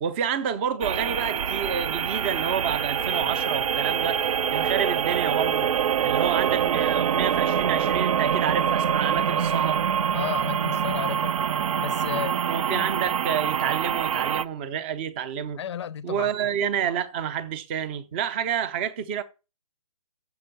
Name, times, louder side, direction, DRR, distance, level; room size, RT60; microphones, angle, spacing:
voice 1, 0.0-4.2 4.5-5.7 6.0-9.8 12.5-15.6 16.0-19.2, right 8 dB, 20° right, 0.5 m, -29 dB
sound 1, 0.8-14.4, right 8 dB, 65° right, 0.5 m, -25 dB
voice 2, 10.1-11.3 11.8-12.4 12.7-12.9 15.6-16.4, left 9 dB, 50° left, 0.5 m, -33 dB
6.9 x 5.4 x 6.6 m
hypercardioid pair, 160°, 19 cm